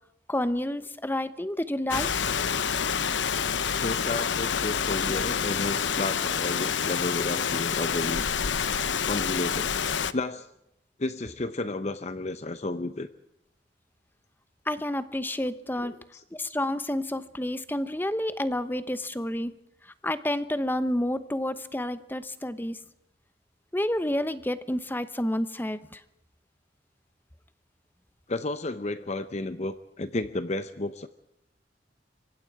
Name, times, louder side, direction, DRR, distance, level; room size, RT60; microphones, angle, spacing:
voice 1, 0.3-2.3 14.7-16.0 16.3-19.5 20.0-22.8 23.7-26.0, left 1 dB, 10° left, 13 dB, 1.0 m, -29 dB
Rain, 1.9-10.1, left 7 dB, 90° left, 0.9 m, -28 dB
voice 2, 3.8-8.2 9.0-9.7 10.1-10.5 11.0-13.1 15.8-16.2 28.3-31.1, left 2 dB, 40° left, 11 dB, 0.8 m, -32 dB
26.0 x 24.0 x 4.8 m, 0.83 s
head